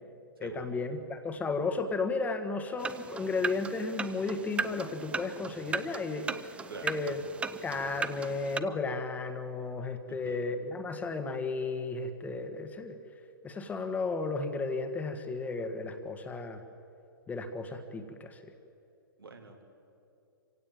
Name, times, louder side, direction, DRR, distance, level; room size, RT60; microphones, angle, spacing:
voice 1, 0.4-6.3 6.8-7.2 7.6-13.0 13.4-16.6 17.3-18.4, left 3 dB, 15° left, 7 dB, 1.6 m, -34 dB
sound 1, 2.8-8.6, right 5 dB, 10° right, 0.6 m, -37 dB
voice 2, 10.1-10.5 19.2-19.6, right 5 dB, 90° right, 2 dB, 3.3 m, -46 dB
26.0 x 16.5 x 9.1 m, 2.7 s
hypercardioid pair, 120°, 12 cm